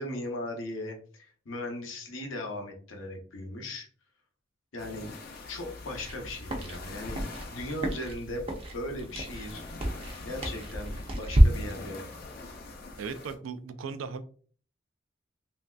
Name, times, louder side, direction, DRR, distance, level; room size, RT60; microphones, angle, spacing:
voice 1, 0.0-3.9 4.7-5.1 5.5-8.5 8.7-9.6 10.2-12.2, left 1 dB, 85° left, 3 dB, 0.7 m, -38 dB
sound 1, 4.8-13.4, left 3 dB, 50° left, 0.6 m, -45 dB
sound 2, 5.9-11.4, equal, 30° right, 0.5 m, -29 dB
voice 2, 13.0-14.2, right 5 dB, 90° right, 10 dB, 0.4 m, -37 dB
3.2 x 2.6 x 2.3 m, 0.44 s
head